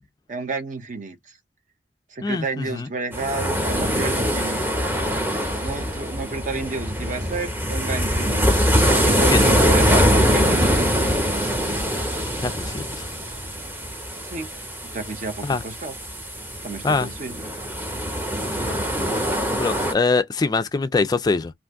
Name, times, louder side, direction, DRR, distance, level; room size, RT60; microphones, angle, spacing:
voice 1, 0.3-1.4 2.1-4.6 5.5-10.9 14.2-14.5 14.8-16.0 16.6-17.4, right 3 dB, 45° right, 0.7 m, -31 dB
voice 2, 2.2-2.9 9.3-9.5 12.4-12.8 15.4-15.6 16.8-17.1 18.5-18.8 19.6-21.5, left 3 dB, 20° left, 0.3 m, -23 dB
sound 1, 3.1-19.9, equal, 10° right, 0.7 m, -23 dB
2.5 x 2.4 x 3.4 m
head